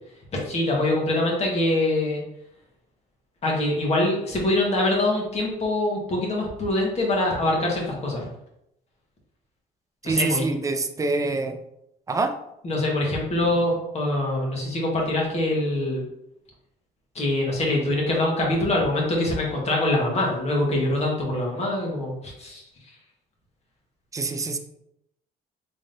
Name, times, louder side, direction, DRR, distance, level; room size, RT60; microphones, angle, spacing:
voice 1, 0.3-2.2 3.4-8.3 10.0-10.4 12.6-16.0 17.1-22.6, left 1 dB, 40° left, -2 dB, 1.4 m, -24 dB
voice 2, 10.0-11.6 12.1-12.3 24.1-24.6, right 3 dB, 20° right, 6 dB, 0.4 m, -25 dB
3.8 x 3.5 x 2.7 m, 0.82 s
cardioid pair, 110°, 17 cm